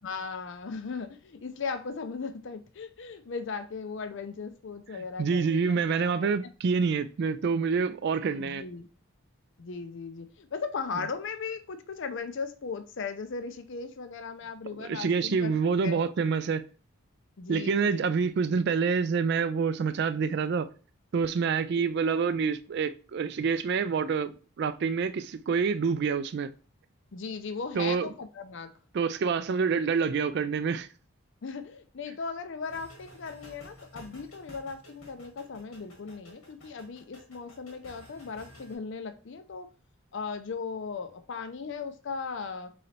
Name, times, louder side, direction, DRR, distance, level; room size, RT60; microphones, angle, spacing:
voice 1, 0.0-6.3 8.4-8.9 9.6-15.5 15.8-16.1 17.4-18.0 21.7-21.9 27.1-28.7 31.4-39.7 40.1-42.7, left 5 dB, 55° left, 0.5 m, -37 dB
voice 2, 5.2-8.6 14.8-16.6 17.5-20.7 21.1-26.5 27.7-28.1 28.9-30.9, right 5 dB, 50° right, 0.3 m, -27 dB
sound 1, 32.6-38.7, equal, 85° left, 1.5 m, -52 dB
3.9 x 3.2 x 4.0 m
head